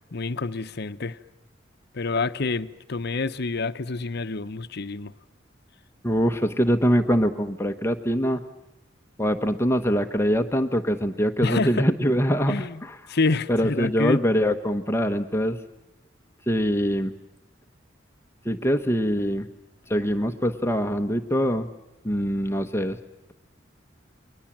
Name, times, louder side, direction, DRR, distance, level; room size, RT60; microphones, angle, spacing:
voice 1, 0.1-1.2 1.9-5.1 11.4-11.9 12.5-14.2, left 3 dB, 60° left, 0.9 m, -27 dB
voice 2, 6.0-8.4 9.2-12.5 12.8-12.9 13.5-15.6 16.5-17.1 18.4-19.5 19.9-21.7 22.0-23.0, equal, 15° left, 1.1 m, -23 dB
29.5 x 22.5 x 7.4 m
head